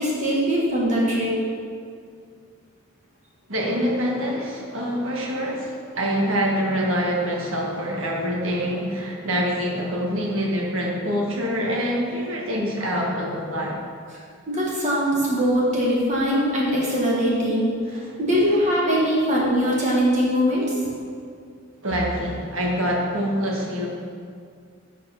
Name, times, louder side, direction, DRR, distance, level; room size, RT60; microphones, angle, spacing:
voice 1, 0.0-1.4 14.5-20.7, equal, 35° right, -5 dB, 1.7 m, -22 dB
voice 2, 3.5-13.8 18.0-18.1 18.4-18.6 21.8-23.9, equal, 75° right, -2 dB, 1.6 m, -25 dB
9.6 x 4.7 x 5.8 m, 2.2 s
head